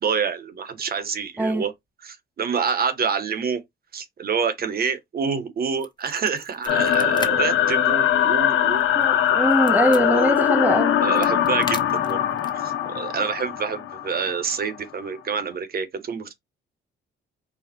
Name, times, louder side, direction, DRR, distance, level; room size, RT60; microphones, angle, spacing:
voice 1, 0.0-1.7 2.0-3.6 3.9-8.9 11.0-12.2 12.5-16.3, right 6 dB, 50° right, 1.4 m, -27 dB
sound 1, 5.7-7.3 7.6-7.8 8.2-10.0 10.8-12.7, left 3 dB, 20° left, 1.1 m, -37 dB
sound 2, 6.7-14.6, left 10 dB, 80° left, 1.1 m, -21 dB
voice 2, 8.9-11.0, right 1 dB, 10° right, 0.5 m, -22 dB
4.8 x 2.4 x 4.5 m
cardioid pair, 90°, 20 cm